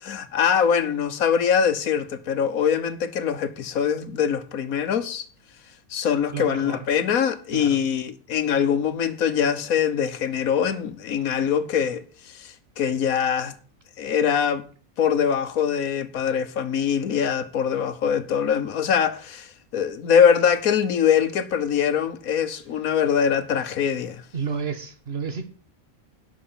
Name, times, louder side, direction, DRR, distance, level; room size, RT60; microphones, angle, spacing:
voice 1, 0.0-5.2 5.9-13.5 14.0-14.6 15.0-24.2, left 7 dB, 85° left, 1.4 m, -23 dB
voice 2, 6.3-6.8 7.5-7.8 24.3-25.5, right 6 dB, 45° right, 1.5 m, -31 dB
11.5 x 5.8 x 7.0 m
omnidirectional pair, 1.5 m